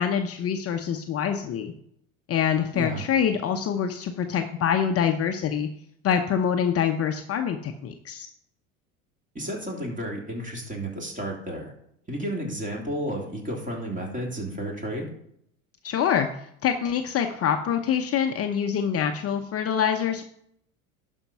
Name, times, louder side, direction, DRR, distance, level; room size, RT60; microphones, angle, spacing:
voice 1, 0.0-1.7 2.3-5.7 6.0-8.3 15.8-20.2, left 8 dB, 35° left, 5 dB, 0.8 m, -25 dB
voice 2, 9.3-11.7 12.1-15.1, right 1 dB, 20° right, -1 dB, 3.3 m, -32 dB
11.5 x 4.6 x 5.5 m, 0.72 s
hypercardioid pair, 75°, 43 cm